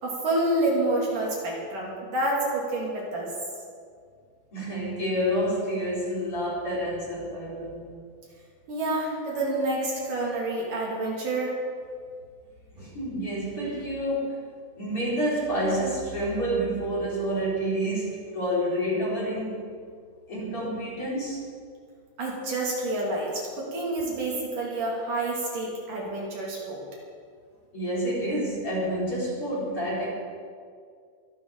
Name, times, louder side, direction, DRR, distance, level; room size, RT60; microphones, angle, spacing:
voice 1, 0.0-3.3 8.7-11.5 12.8-12.9 22.2-26.8, right 2 dB, 65° right, -3 dB, 4.6 m, -28 dB
voice 2, 4.5-7.8 12.8-14.4 14.8-19.6 20.3-21.4 27.7-30.1, equal, 40° left, -6 dB, 4.8 m, -28 dB
23.5 x 12.0 x 4.2 m, 2.1 s
omnidirectional pair, 4.1 m